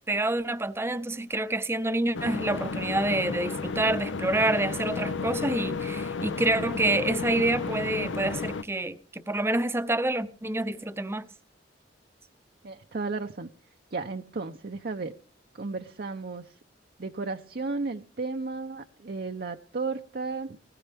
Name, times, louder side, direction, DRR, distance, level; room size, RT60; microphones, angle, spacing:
voice 1, 0.1-11.3, right 2 dB, 15° right, 0.7 m, -27 dB
sound 1, 2.1-8.6, left 4 dB, 85° left, 0.7 m, -32 dB
voice 2, 12.6-13.5 13.9-15.1 15.5-16.6 17.0-20.6, right 3 dB, 55° right, 0.7 m, -34 dB
20.5 x 15.5 x 3.5 m
head